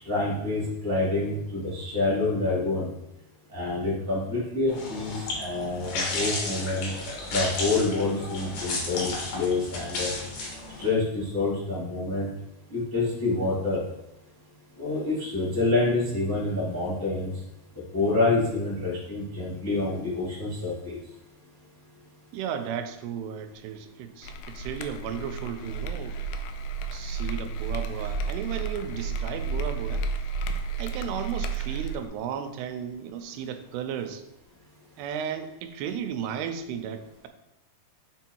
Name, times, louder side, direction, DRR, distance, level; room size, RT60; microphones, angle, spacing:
voice 1, 0.0-2.9 3.5-6.9 7.3-10.1 10.8-12.3 12.7-13.8 14.8-17.4 17.7-21.1, left 3 dB, 10° left, -9 dB, 1.0 m, -27 dB
sound 1, 4.7-10.9, left 2 dB, 65° left, 3.0 m, -33 dB
voice 2, 22.3-26.2 26.9-30.0 30.8-34.2 35.0-37.3, right 8 dB, 90° right, 8 dB, 2.7 m, -34 dB
sound 2, 24.2-32.1, right 4 dB, 85° left, 2.5 m, -32 dB
6.3 x 4.5 x 4.5 m, 0.86 s
omnidirectional pair, 4.7 m